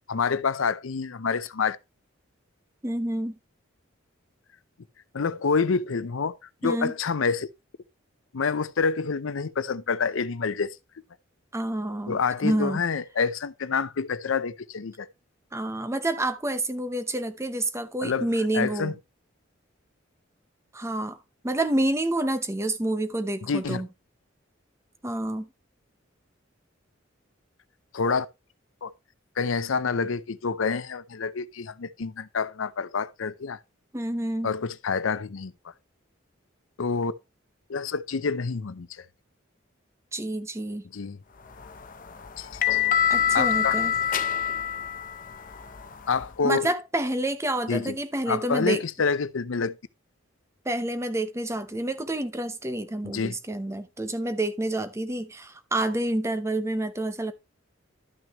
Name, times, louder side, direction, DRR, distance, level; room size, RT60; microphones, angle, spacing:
voice 1, 0.1-1.8 5.1-6.4 6.6-7.5 8.3-10.8 12.1-15.1 18.0-18.3 18.5-18.9 23.4-23.8 27.9-28.3 28.8-28.9 29.4-33.6 34.4-35.5 36.8-37.1 37.7-39.0 40.9-41.2 42.4-42.8 43.3-43.8 46.1-46.7 47.7-48.0 48.3-49.8 53.0-53.4, left 5 dB, 80° left, 0.6 m, -27 dB
voice 2, 2.8-3.4 6.6-6.9 11.5-12.2 12.4-12.8 15.5-18.9 20.7-21.2 21.4-23.9 25.0-25.5 33.9-34.5 40.1-40.8 43.1-43.9 46.4-48.8 50.6-57.3, right 1 dB, 15° right, 0.7 m, -28 dB
sound 1, 41.5-46.3, left 9 dB, 40° left, 0.7 m, -26 dB
12.0 x 6.0 x 3.0 m
head